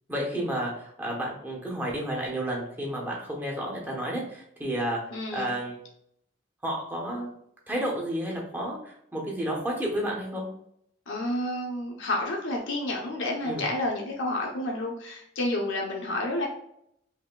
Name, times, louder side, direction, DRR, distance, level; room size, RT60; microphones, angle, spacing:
voice 1, 0.1-5.0 5.3-5.8 6.6-7.3 7.7-10.5 13.4-13.6, right 1 dB, 10° right, -3 dB, 0.9 m, -31 dB
voice 2, 5.1-5.5 11.1-16.5, left 1 dB, 90° left, 0 dB, 0.8 m, -30 dB
5.4 x 2.8 x 2.3 m, 0.70 s
head